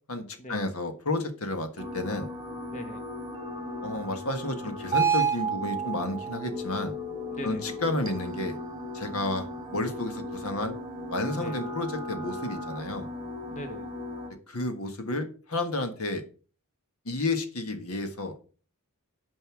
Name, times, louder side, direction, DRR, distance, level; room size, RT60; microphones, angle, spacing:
voice 1, 0.1-2.3 3.8-7.0 7.4-8.6 8.9-10.7 11.1-13.1 14.5-16.2 17.0-18.3, left 2 dB, 70° left, 7 dB, 1.6 m, -31 dB
sound 1, 1.8-14.3, right 3 dB, 20° right, 1.9 m, -34 dB
voice 2, 2.7-3.0 7.3-7.7 8.1-8.2 11.3-11.6 13.5-13.9, equal, 35° left, 6 dB, 1.3 m, -40 dB
9.6 x 5.3 x 6.1 m, 0.38 s
head